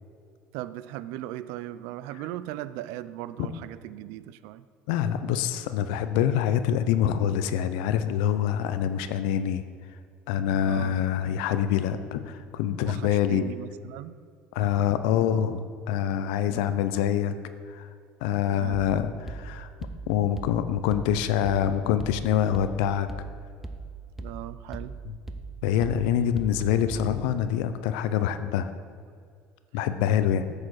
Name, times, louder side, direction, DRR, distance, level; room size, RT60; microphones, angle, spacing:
voice 1, 0.5-4.6 10.6-10.9 12.9-14.2 16.5-16.8 18.6-18.9 24.2-25.0 29.7-29.8, right 14 dB, 80° right, 15 dB, 0.3 m, -38 dB
voice 2, 4.9-9.6 10.3-13.4 14.5-15.6 15.9-17.3 17.7-17.9 18.2-19.7 20.1-23.1 25.6-28.7 29.7-30.5, left 9 dB, 85° left, 11 dB, 0.5 m, -25 dB
sound 1, 18.7-27.4, right 3 dB, 5° right, 0.6 m, -40 dB
8.4 x 6.4 x 4.8 m, 2.2 s
supercardioid pair, 90°, 5 cm